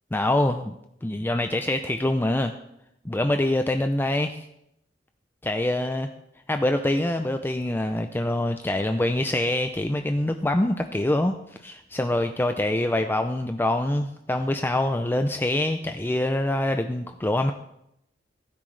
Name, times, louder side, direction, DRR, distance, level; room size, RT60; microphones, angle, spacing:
voice 1, 0.1-0.8 1.0-2.5 3.0-4.5 5.4-6.1 6.5-17.5, left 1 dB, 10° left, 7 dB, 0.4 m, -25 dB
16.0 x 10.0 x 3.3 m, 0.78 s
head